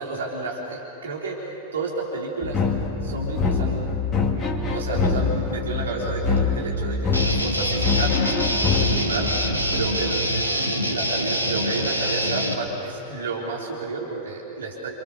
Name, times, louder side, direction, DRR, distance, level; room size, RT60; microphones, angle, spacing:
voice 1, 0.0-2.6 3.0-3.9 4.2-8.2 8.6-9.3 9.7-14.9, right 3 dB, 65° right, -2 dB, 3.7 m, -31 dB
sound 1, 2.4-9.9, left 4 dB, 25° left, 2.6 m, -25 dB
Guitar, 7.1-12.5, equal, 90° right, 2.1 m, -25 dB
29.0 x 26.0 x 6.9 m, 2.9 s
figure-of-eight pair, 90°, 0 cm